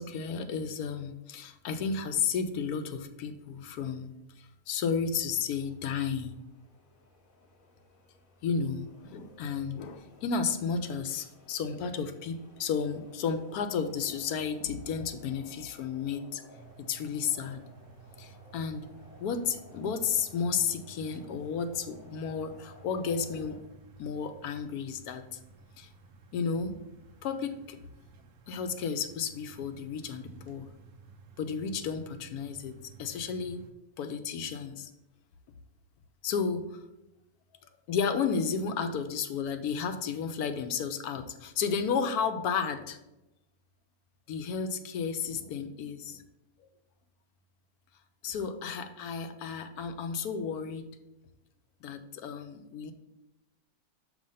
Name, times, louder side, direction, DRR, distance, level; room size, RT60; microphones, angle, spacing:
voice 1, 0.0-4.1 4.4-6.4 8.4-16.4 16.9-17.6 18.2-18.9 19.2-23.6 24.0-25.4 25.8-25.9 26.3-26.8 27.2-27.8 28.5-30.7 31.4-33.6 34.0-34.9 36.2-36.8 37.9-43.0 44.3-46.2 48.2-50.9 51.8-52.9, left 6 dB, 80° left, 8 dB, 1.1 m, -32 dB
sound 1, 5.5-23.6, left 3 dB, 40° left, 1.0 m, -57 dB
sound 2, 16.5-33.7, right 5 dB, 85° right, 1.2 m, -54 dB
6.3 x 3.3 x 5.4 m, 0.96 s
omnidirectional pair, 1.6 m